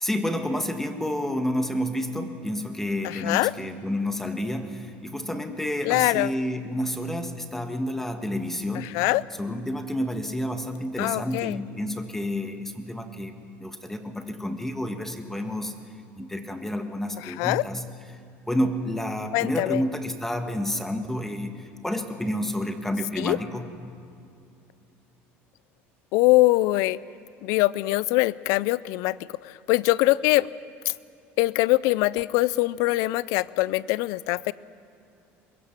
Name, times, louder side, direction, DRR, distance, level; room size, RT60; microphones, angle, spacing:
voice 1, 0.0-9.0 9.4-13.3 13.6-15.7 16.2-17.8 18.1-18.2 18.5-23.7, left 1 dB, 5° left, 6 dB, 1.6 m, -30 dB
voice 2, 3.0-3.5 5.9-6.3 8.8-9.2 11.0-11.6 17.3-17.6 19.3-19.8 23.2-23.4 26.1-27.0 27.4-29.2 29.4-30.5 31.4-34.5, left 19 dB, 80° left, 20 dB, 0.5 m, -23 dB
22.0 x 22.0 x 6.0 m, 2.7 s
cardioid pair, 110°, 6 cm